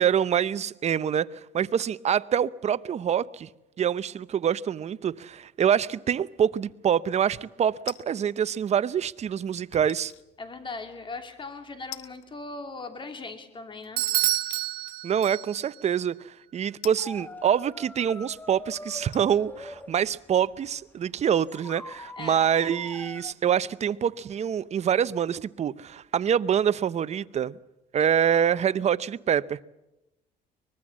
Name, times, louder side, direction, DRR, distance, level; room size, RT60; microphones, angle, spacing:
voice 1, 0.0-3.5 3.8-10.1 15.0-16.1 16.5-27.6 27.9-29.6, right 8 dB, 40° right, 0.7 m, -25 dB
sound 1, 7.9-8.4 9.7-10.2 10.8-10.9 11.9-12.4 12.6-12.7 14.0-14.7 15.5-15.6 16.8-17.9 18.6-18.7 19.1-21.5 21.8-21.9, left 15 dB, 90° left, 1.1 m, -45 dB
voice 2, 10.4-14.1 22.2-22.5, left 3 dB, 30° left, 3.1 m, -39 dB
Bell / Doorbell, 14.0-15.8, right 15 dB, 65° right, 1.1 m, -28 dB
sound 2, 17.0-21.2 21.5-23.3, left 2 dB, 10° left, 1.1 m, -43 dB
23.5 x 20.5 x 7.4 m
cardioid pair, 110°, 17 cm